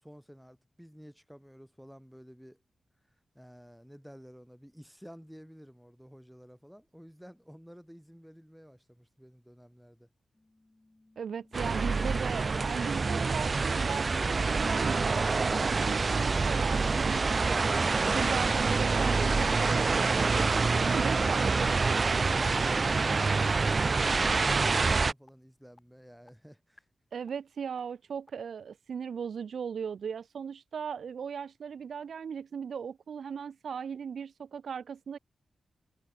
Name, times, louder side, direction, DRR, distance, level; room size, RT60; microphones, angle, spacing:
voice 1, 0.0-2.6 3.3-10.1 22.3-26.9, equal, ahead, 3.5 m, -52 dB
sound 1, 10.3-12.8 13.3-13.4 13.8-13.9 14.3-14.4 14.8-14.9 15.3-15.4 15.8-15.9 16.3-16.4 16.8-16.9 17.3-17.4 17.8-17.9 18.3-18.4 18.8-18.9 19.3-19.4 19.8-19.9 20.3-20.4 20.8-20.9 21.3-21.4 21.8-21.9 22.3-22.4 22.8-22.9 23.3-23.4 23.8-23.9 24.3-24.4 24.8-24.9 25.3-25.4 25.8-25.9 26.3-26.4 26.8-26.9 27.3-27.4 27.8-27.9 28.3-28.4, left 2 dB, 20° left, 3.8 m, -58 dB
voice 2, 11.2-22.2 27.1-35.2, right 7 dB, 75° right, 0.7 m, -37 dB
sound 2, 11.5-25.1, right 4 dB, 40° right, 0.4 m, -26 dB
wide cardioid pair, 105°, 0 cm